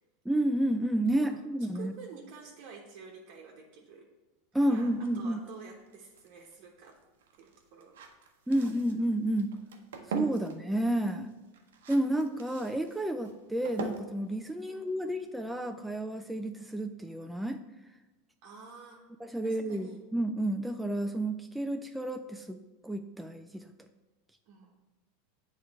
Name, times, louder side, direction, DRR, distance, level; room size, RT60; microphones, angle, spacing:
voice 1, 0.3-1.9 4.5-5.4 8.5-9.6 10.1-11.3 11.9-17.6 19.2-22.6 22.8-23.7, right 1 dB, 5° right, 6 dB, 0.3 m, -30 dB
voice 2, 1.7-4.1 4.6-7.0 7.4-8.5 14.7-15.2 18.4-19.0 19.4-20.0 24.5-24.8, right 5 dB, 60° right, -1 dB, 1.0 m, -50 dB
sound 1, 4.7-15.5, right 6 dB, 90° right, 0.7 m, -44 dB
7.8 x 3.3 x 4.6 m, 1.2 s
supercardioid pair, 120°, 0 cm